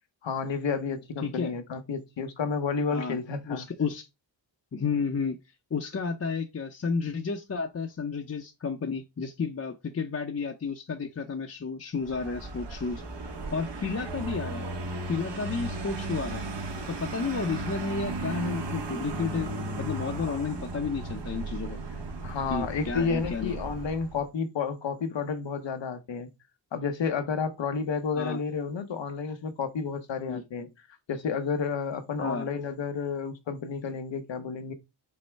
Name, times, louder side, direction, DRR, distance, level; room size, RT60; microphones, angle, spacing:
voice 1, 0.2-3.7 22.2-26.3 26.7-30.7 31.1-34.7, left 5 dB, 80° left, 0.9 m, -31 dB
voice 2, 1.2-1.5 2.9-3.2 3.5-4.1 4.7-5.4 5.7-13.0 13.5-14.7 15.1-16.5 16.9-19.5 19.8-21.8 22.5-23.5 28.1-28.4 30.3-30.4 32.2-32.5, left 5 dB, 35° left, 0.6 m, -32 dB
Vehicle, 12.0-24.2, right 2 dB, 65° right, 1.2 m, -35 dB
5.3 x 2.1 x 4.4 m
cardioid pair, 70°, 43 cm